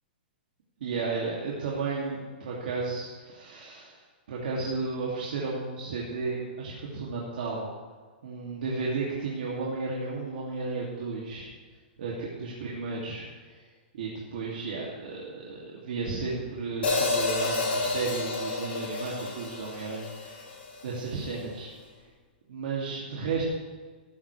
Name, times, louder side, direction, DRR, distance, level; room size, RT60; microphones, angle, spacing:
voice 1, 0.8-4.0 4.3-7.7 8.2-11.5 12.0-13.6 13.9-20.5 20.8-21.7 22.5-23.4, right 4 dB, 60° right, -5 dB, 2.4 m, -33 dB
Hi-hat, 16.8-21.0, left 3 dB, 80° left, 4.2 m, -30 dB
15.0 x 11.5 x 3.3 m, 1.5 s
hypercardioid pair, 170°, 6 cm